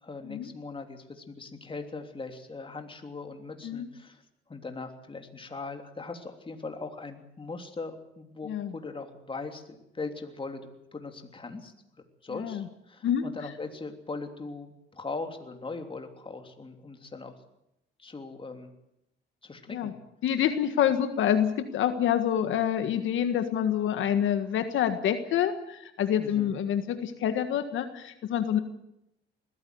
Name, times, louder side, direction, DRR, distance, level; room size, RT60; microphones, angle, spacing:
voice 1, 0.0-4.2 4.5-11.7 12.2-17.4 18.0-18.7 19.4-19.9 26.2-26.5, left 3 dB, 25° left, 5 dB, 3.2 m, -40 dB
voice 2, 12.3-12.7 13.0-13.2 19.7-19.9 20.2-28.6, left 9 dB, 75° left, 8 dB, 1.7 m, -27 dB
21.0 x 15.0 x 9.5 m, 0.83 s
cardioid pair, 90°, 20 cm